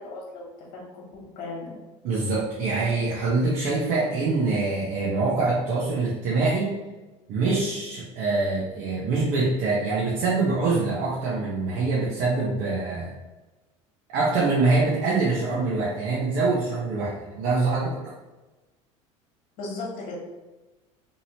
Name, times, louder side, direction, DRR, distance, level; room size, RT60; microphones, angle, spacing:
voice 1, 0.0-1.7 19.6-20.1, left 3 dB, 60° left, -2 dB, 1.1 m, -37 dB
voice 2, 2.0-6.7 7.3-13.1 14.1-18.0, right 3 dB, 60° right, -7 dB, 0.9 m, -24 dB
2.9 x 2.8 x 2.8 m, 1.1 s
hypercardioid pair, 85°, 17 cm